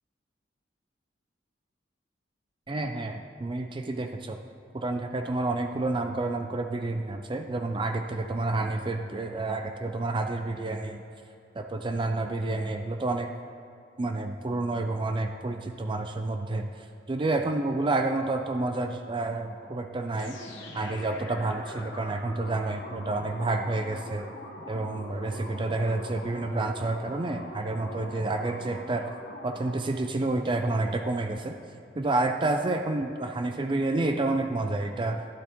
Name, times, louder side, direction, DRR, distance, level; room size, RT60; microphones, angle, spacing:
voice 1, 2.7-4.4 4.7-11.0 11.5-13.3 14.0-24.3 24.7-29.1 29.4-31.6 32.0-35.3, right 2 dB, 25° right, 5 dB, 0.4 m, -29 dB
sound 1, 20.2-30.0, left 1 dB, 80° left, 1.2 m, -43 dB
12.0 x 11.5 x 3.0 m, 2.6 s
head